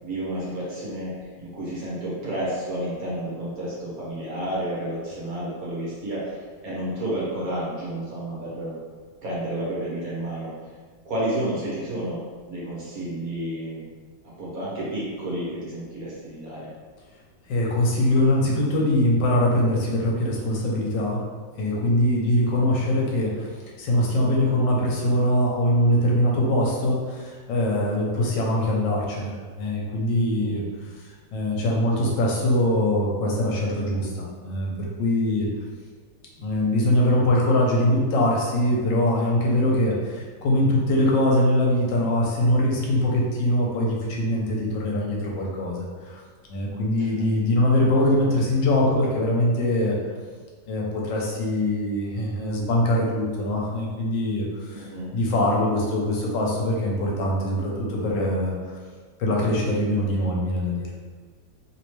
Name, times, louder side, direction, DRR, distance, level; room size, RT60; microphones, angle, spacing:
voice 1, 0.0-8.7 9.2-10.5 11.0-12.2 12.5-13.8 14.4-16.7 30.4-30.7 47.1-47.2 54.7-55.1, right 1 dB, 55° right, -7 dB, 1.2 m, -31 dB
voice 2, 17.5-21.2 21.6-23.5 23.8-30.9 31.3-35.5 36.4-46.2 46.5-49.9 50.7-54.9 55.1-58.5 59.2-60.9, left 1 dB, 75° left, -2 dB, 1.3 m, -22 dB
3.2 x 3.0 x 3.1 m, 1.5 s
omnidirectional pair, 2.1 m